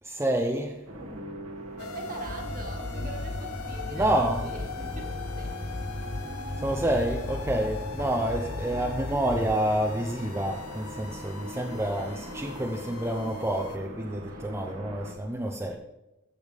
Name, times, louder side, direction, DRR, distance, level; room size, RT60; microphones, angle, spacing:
voice 1, 0.0-0.9 3.9-4.5 6.5-15.8, right 1 dB, 10° right, 0.8 m, -28 dB
sound 1, 0.9-15.1, right 1 dB, 75° right, 1.8 m, -42 dB
sound 2, 1.8-13.8, left 6 dB, 85° left, 0.8 m, -42 dB
voice 2, 1.8-4.1 4.5-5.7 14.3-14.4, right 2 dB, 40° right, 1.9 m, -43 dB
sound 3, 2.3-9.6, left 2 dB, 20° left, 0.5 m, -36 dB
14.5 x 7.0 x 3.5 m
head